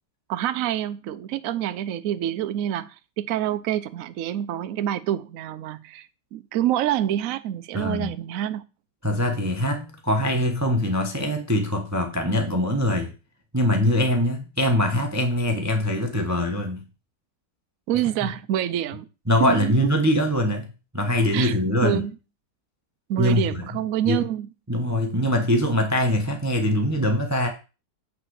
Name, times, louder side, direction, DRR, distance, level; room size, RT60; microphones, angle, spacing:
voice 1, 0.3-8.6 17.9-19.1 19.4-19.7 21.3-21.6 21.8-22.1 23.1-24.5, right 12 dB, 70° right, 0.8 m, -27 dB
voice 2, 7.7-8.1 9.0-13.1 13.5-16.8 19.3-20.7 20.9-22.0 23.2-23.5 24.0-24.2 24.7-27.5, left 1 dB, 10° right, 0.8 m, -23 dB
9.1 x 4.2 x 6.3 m
omnidirectional pair, 1.9 m